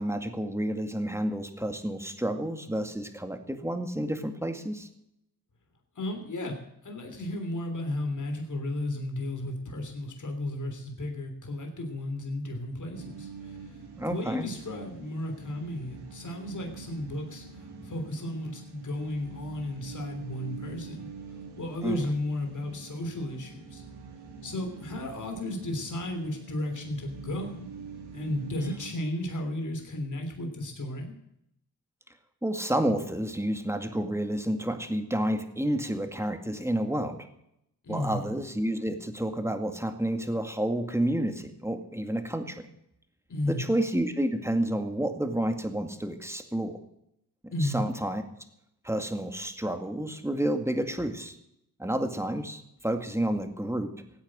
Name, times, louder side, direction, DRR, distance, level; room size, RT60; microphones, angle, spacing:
voice 1, 0.0-4.9 14.0-14.5 21.8-22.0 32.4-37.2 37.9-42.6 43.4-46.8 47.6-48.2 48.8-51.3 51.8-53.9, right 1 dB, 5° right, 6 dB, 2.1 m, -30 dB
voice 2, 5.9-6.6 6.8-21.1 21.6-23.8 24.4-27.7 28.1-31.1 37.8-38.3 43.3-43.7 47.5-47.9, left 1 dB, 50° left, 3 dB, 3.2 m, -34 dB
sound 1, 12.9-28.9, right 5 dB, 75° right, 2.8 m, -45 dB
15.5 x 9.0 x 7.6 m, 0.78 s
cardioid pair, 60°, 39 cm